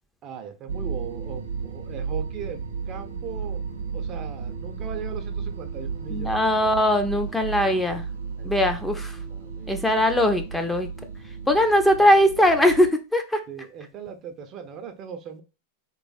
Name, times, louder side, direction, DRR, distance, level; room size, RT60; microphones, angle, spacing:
voice 1, 0.2-2.6 2.9-3.6 3.9-6.4 8.4-8.7 9.3-9.8 13.5-15.4, right 7 dB, 40° right, 7 dB, 0.6 m, -39 dB
sound 1, 0.7-12.9, right 5 dB, 80° right, 0.6 m, -33 dB
voice 2, 6.1-8.0 8.4-9.2 9.7-10.9 11.5-13.4, left 1 dB, 5° left, 5 dB, 0.5 m, -20 dB
3.3 x 3.0 x 2.5 m, 0.29 s
hypercardioid pair, 95°, 0 cm